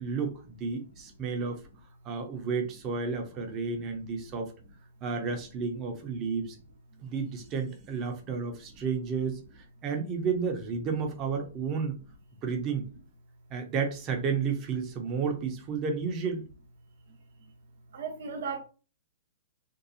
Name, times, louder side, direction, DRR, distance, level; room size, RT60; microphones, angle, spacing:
voice 1, 0.0-1.6 2.0-4.5 5.0-6.6 7.0-12.0 12.4-12.8 13.5-16.5, right 5 dB, 30° right, 0.7 m, -32 dB
voice 2, 17.1-17.5 17.9-18.6, right 5 dB, 65° right, 0.9 m, -38 dB
2.7 x 2.3 x 2.7 m
hypercardioid pair, 130°, 0 cm